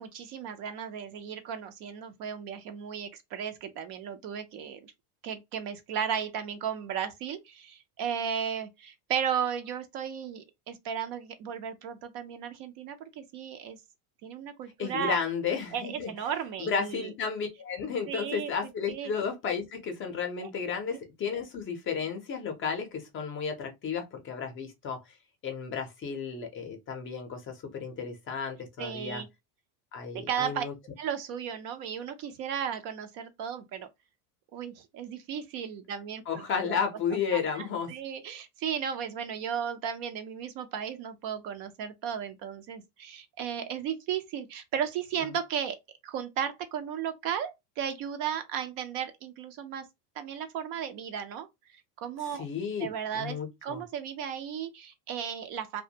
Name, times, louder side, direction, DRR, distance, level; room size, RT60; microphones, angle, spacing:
voice 1, 0.0-4.9 5.2-13.8 14.2-15.2 15.7-17.1 18.1-18.5 18.9-19.1 20.4-20.5 21.3-21.4 28.8-29.3 30.3-30.6 31.0-33.9 34.5-36.8 37.3-45.8 46.0-49.8 50.2-51.5 52.0-52.4 52.8-55.8, right 8 dB, 50° right, 0.5 m, -35 dB
voice 2, 14.8-25.0 25.4-29.2 29.9-30.7 36.2-37.9 45.3-45.4 52.2-53.8, left 6 dB, 25° left, 0.5 m, -33 dB
2.4 x 2.2 x 2.7 m
supercardioid pair, 140°, 46 cm